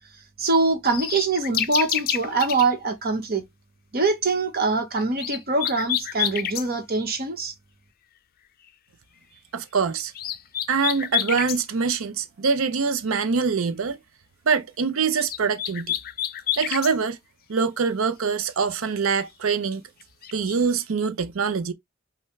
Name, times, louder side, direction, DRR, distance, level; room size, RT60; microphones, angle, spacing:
voice 1, 0.4-3.4 3.9-7.5, right 3 dB, 45° right, 1.1 m, -24 dB
sound 1, 0.9-2.7 5.0-6.7 10.0-11.6 15.0-16.9 20.0-20.6, left 11 dB, 45° left, 0.4 m, -28 dB
voice 2, 9.5-10.1 10.7-14.0 14.5-15.9 16.6-17.2 17.5-19.8 20.3-21.7, right 5 dB, 70° right, 0.6 m, -24 dB
5.5 x 2.2 x 3.1 m
head